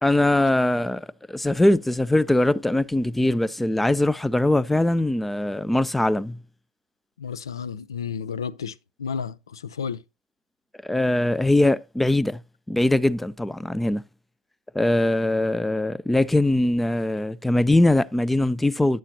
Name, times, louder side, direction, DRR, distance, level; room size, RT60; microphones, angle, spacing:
voice 1, 0.0-6.4 10.8-12.4 12.7-14.0 14.7-19.0, left 1 dB, 5° left, 0.4 m, -21 dB
voice 2, 7.2-10.0, left 6 dB, 80° left, 0.4 m, -32 dB
9.0 x 7.4 x 2.7 m
figure-of-eight pair, 75°, 2 cm